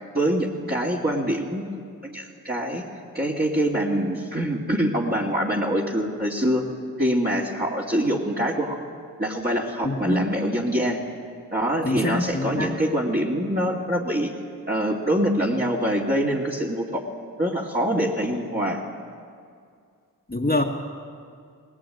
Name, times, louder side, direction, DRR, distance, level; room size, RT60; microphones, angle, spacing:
voice 1, 0.1-1.6 2.0-2.8 3.1-6.6 7.0-8.8 9.2-11.0 11.5-14.3 14.7-17.0 17.4-18.8, equal, 25° right, -5 dB, 2.6 m, -24 dB
voice 2, 9.8-10.3 11.8-12.8 20.3-20.6, left 2 dB, 25° left, -1 dB, 1.9 m, -25 dB
20.0 x 19.5 x 9.1 m, 2.2 s
cardioid pair, 60°, 36 cm